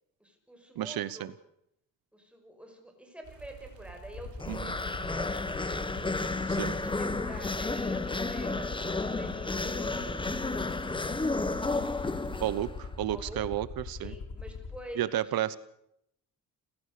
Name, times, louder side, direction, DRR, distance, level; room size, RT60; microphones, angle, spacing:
voice 1, 0.2-1.3 2.1-5.8 6.5-10.7 12.3-12.7 13.1-13.5 14.0-15.5, equal, 5° right, 3 dB, 5.6 m, -47 dB
voice 2, 0.8-1.3 4.5-4.7 6.5-6.8 12.4-12.7 13.0-14.1 15.0-15.6, right 13 dB, 90° right, 17 dB, 0.9 m, -31 dB
sound 1, 3.2-12.7, right 6 dB, 55° right, 3.6 m, -49 dB
Aircraft, 4.1-14.8, left 5 dB, 55° left, 3.7 m, -42 dB
sound 2, 4.4-12.9, left 3 dB, 15° left, 1.1 m, -32 dB
29.0 x 16.0 x 6.7 m, 0.78 s
cardioid pair, 140°, 35 cm